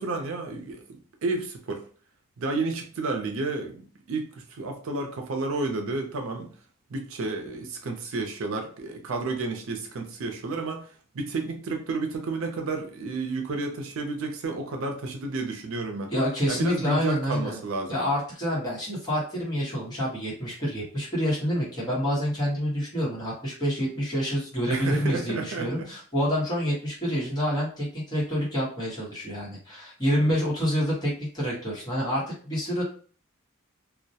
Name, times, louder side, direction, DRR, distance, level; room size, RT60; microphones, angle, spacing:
voice 1, 0.0-1.8 2.4-6.5 6.9-10.9 11.1-16.1 16.5-18.0 24.7-25.9 30.2-30.3, right 3 dB, 80° right, 0.5 m, -31 dB
voice 2, 16.1-17.6 17.9-32.8, equal, 20° left, 1.0 m, -27 dB
2.2 x 2.1 x 2.7 m
head